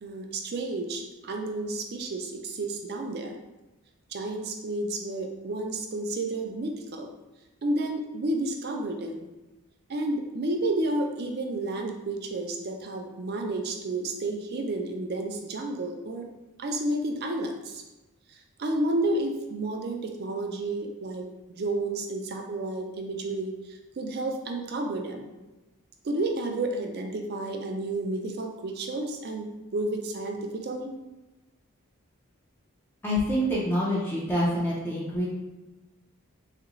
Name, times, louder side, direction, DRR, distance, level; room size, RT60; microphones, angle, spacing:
voice 1, 0.0-3.4 4.1-7.1 7.6-9.3 9.9-16.3 16.6-17.8 18.6-21.3 21.5-23.6 24.0-25.3 26.0-29.5 29.7-30.9, right 2 dB, 45° right, 3 dB, 0.4 m, -31 dB
voice 2, 33.0-35.3, equal, 10° left, -6 dB, 0.5 m, -26 dB
3.4 x 2.4 x 3.0 m, 1.1 s
head